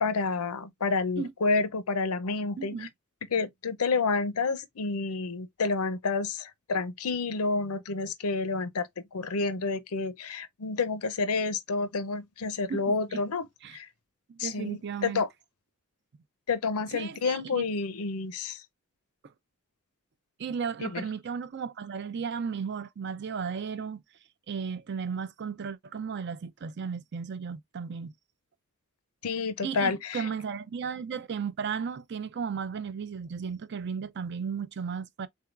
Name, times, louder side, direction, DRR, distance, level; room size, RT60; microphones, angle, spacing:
voice 1, 0.0-2.9 3.3-13.5 13.7-13.9 14.4-15.3 16.5-18.6 20.8-21.0 29.2-30.3, left 4 dB, 90° left, 0.7 m, -29 dB
voice 2, 2.6-2.9 12.7-13.2 13.6-13.8 14.4-15.2 16.9-17.7 20.4-24.0 24.5-28.1 29.6-35.3, right 6 dB, 50° right, 0.4 m, -35 dB
3.8 x 3.5 x 2.4 m
head